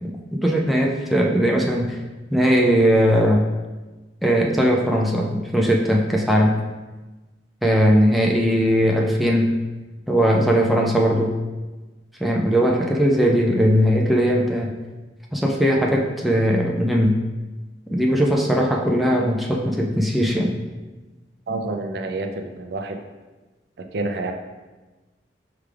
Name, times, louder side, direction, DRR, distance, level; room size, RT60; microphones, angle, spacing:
voice 1, 0.0-2.0 2.3-3.4 4.2-6.6 7.6-9.5 10.1-11.3 12.2-14.7 15.3-17.2 17.9-20.5, equal, ahead, -1 dB, 0.4 m, -19 dB
voice 2, 21.5-23.0 23.9-24.3, right 2 dB, 65° right, 5 dB, 0.4 m, -28 dB
4.8 x 3.4 x 3.3 m, 1.2 s
head